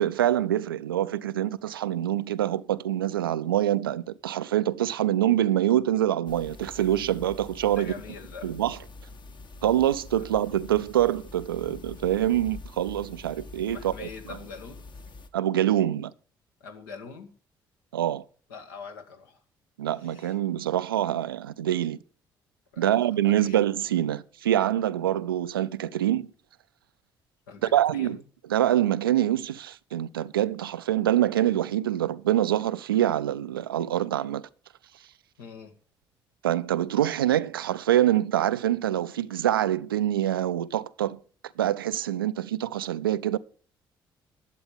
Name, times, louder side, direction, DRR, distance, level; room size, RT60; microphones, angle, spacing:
voice 1, 0.0-7.9 8.4-8.8 9.6-14.1 15.3-16.1 17.9-18.2 19.8-22.0 22.8-26.3 27.7-28.2 28.5-34.4 36.4-41.2 41.6-43.4, right 12 dB, 80° right, 0.4 m, -25 dB
sound 1, 6.3-15.3, left 3 dB, 40° left, 1.4 m, -45 dB
voice 2, 7.7-8.5 13.7-14.8 16.6-17.3 18.5-19.4 20.0-20.3 22.7-23.1 23.4-23.6 27.5-28.2 35.4-35.7, left 5 dB, 75° left, 1.7 m, -43 dB
11.5 x 7.8 x 5.2 m
figure-of-eight pair, 45°, 12 cm